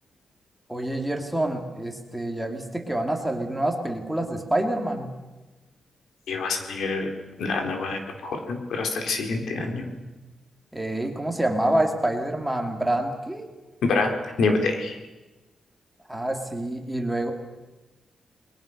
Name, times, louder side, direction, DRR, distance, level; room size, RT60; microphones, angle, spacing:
voice 1, 0.7-5.1 10.7-13.4 16.1-17.3, right 1 dB, 5° right, 3 dB, 2.8 m, -27 dB
voice 2, 6.3-7.1 7.4-9.9 13.8-15.0, left 3 dB, 90° left, 4 dB, 4.2 m, -26 dB
30.0 x 21.5 x 6.7 m, 1.1 s
wide cardioid pair, 165°, 0 cm